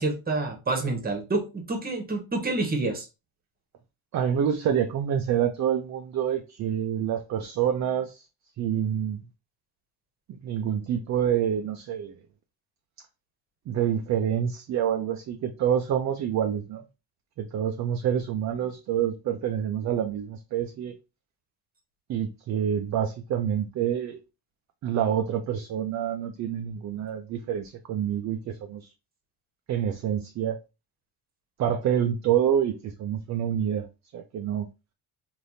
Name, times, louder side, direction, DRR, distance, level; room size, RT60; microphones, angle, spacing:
voice 1, 0.0-3.1, right 2 dB, 20° right, 1.0 m, -28 dB
voice 2, 4.1-8.2 8.6-9.2 10.4-12.1 13.7-16.8 17.4-20.9 22.1-24.2 24.8-28.9 29.7-30.6 31.6-33.9 34.1-34.7, right 9 dB, 40° right, 0.4 m, -27 dB
3.4 x 2.6 x 2.6 m
cardioid pair, 100°, 44 cm